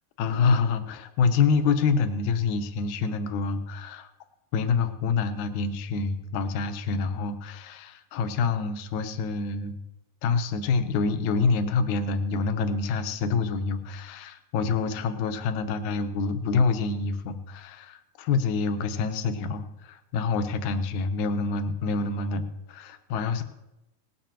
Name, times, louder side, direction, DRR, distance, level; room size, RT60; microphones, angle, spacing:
voice 1, 0.2-4.1 4.5-9.8 10.2-22.4 22.7-23.4, left 4 dB, 70° left, 8 dB, 2.2 m, -26 dB
19.0 x 14.5 x 3.0 m, 0.91 s
omnidirectional pair, 3.8 m